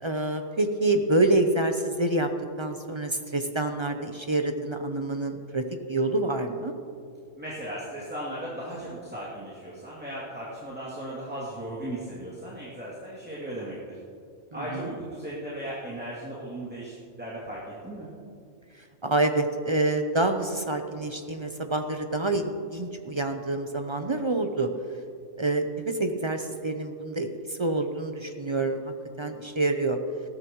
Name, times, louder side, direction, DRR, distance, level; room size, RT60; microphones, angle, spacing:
voice 1, 0.0-2.3 2.6-6.7 14.5-14.9 19.0-24.7 25.4-28.9 29.2-30.0, right 2 dB, 30° right, 6 dB, 0.6 m, -27 dB
voice 2, 7.4-13.8 14.5-18.1, right 1 dB, 10° right, -8 dB, 2.6 m, -37 dB
19.0 x 13.5 x 3.1 m, 2.4 s
omnidirectional pair, 1.3 m